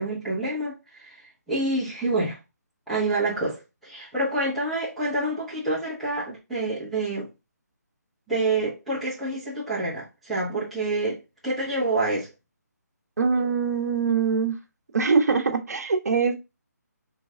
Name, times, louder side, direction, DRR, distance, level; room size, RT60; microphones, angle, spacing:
voice 1, 0.0-2.4 2.9-7.3 8.3-12.3, right 2 dB, ahead, 1.3 m, -27 dB
voice 2, 13.2-14.5 14.9-16.3, right 5 dB, 65° right, 1.1 m, -23 dB
3.9 x 3.3 x 3.7 m
hypercardioid pair, 165°, 9 cm